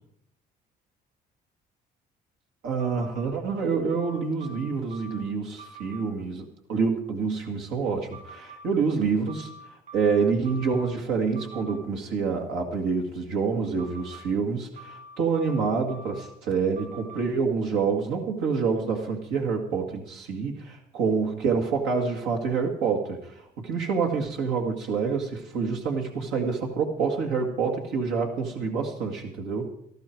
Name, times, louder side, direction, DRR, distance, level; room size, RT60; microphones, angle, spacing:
voice 1, 2.6-29.7, right 5 dB, 90° right, 2 dB, 2.1 m, -27 dB
sound 1, 2.8-3.3 3.9-5.2 5.6-6.0 8.1-8.7 9.3-10.9 11.3-11.8 13.8-14.2 14.8-16.3 16.8-17.2, right 2 dB, 50° right, 5.5 m, -45 dB
18.5 x 13.5 x 4.6 m, 0.75 s
cardioid pair, 110°, 17 cm